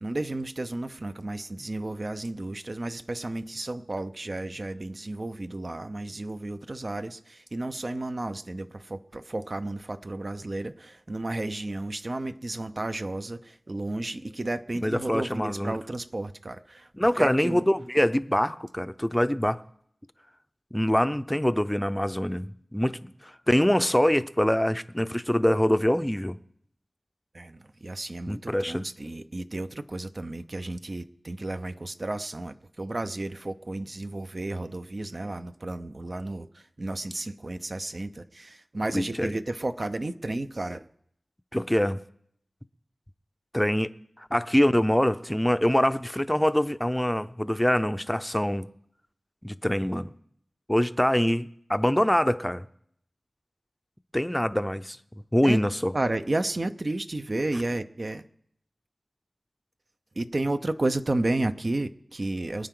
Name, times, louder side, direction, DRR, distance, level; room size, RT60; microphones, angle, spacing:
voice 1, 0.0-16.9 17.1-17.7 27.3-40.9 55.4-55.6 55.9-58.2 60.2-62.7, right 2 dB, 50° right, 0.7 m, -32 dB
voice 2, 14.8-15.8 17.0-19.6 20.7-22.5 22.7-26.4 28.3-28.8 38.9-39.3 41.5-42.0 43.5-43.9 44.3-48.7 49.4-50.1 50.7-52.7 54.1-55.0 55.3-55.9, equal, 10° left, 0.6 m, -24 dB
25.0 x 9.1 x 3.9 m
wide cardioid pair, 50°, 0 cm